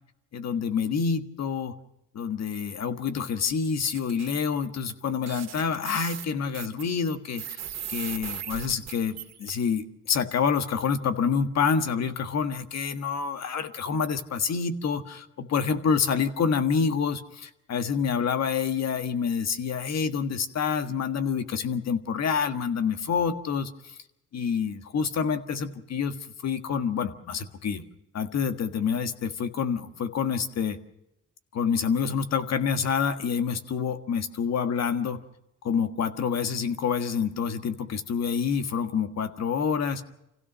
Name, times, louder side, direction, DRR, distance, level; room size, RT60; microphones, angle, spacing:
voice 1, 0.3-1.7 2.1-7.6 7.9-23.7 24.3-26.2 26.4-27.8 28.1-30.8 31.5-35.2 35.6-40.1, left 6 dB, 60° left, 8 dB, 1.6 m, -27 dB
sound 1, 3.5-4.3 4.9-5.0 5.2-9.5, right 9 dB, 60° right, 2.0 m, -38 dB
26.5 x 16.0 x 6.2 m, 0.87 s
cardioid pair, 90°, 30 cm